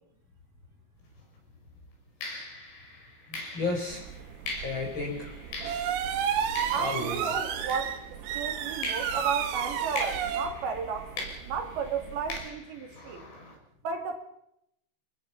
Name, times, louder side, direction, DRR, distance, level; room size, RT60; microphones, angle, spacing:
sound 1, 1.1-1.3 2.2-8.4 8.8-13.6, left 2 dB, 65° left, 8.3 m, -42 dB
voice 1, 3.3-4.1 4.6-5.3 6.8-7.3, left 2 dB, 25° left, 2 dB, 4.5 m, -33 dB
sound 2, 3.9-12.5, right 8 dB, 80° right, 4.3 m, -33 dB
voice 2, 6.7-8.0 8.3-13.2 13.8-14.2, right 6 dB, 65° right, 5 dB, 4.1 m, -34 dB
28.5 x 20.5 x 5.8 m, 0.77 s
omnidirectional pair, 5.8 m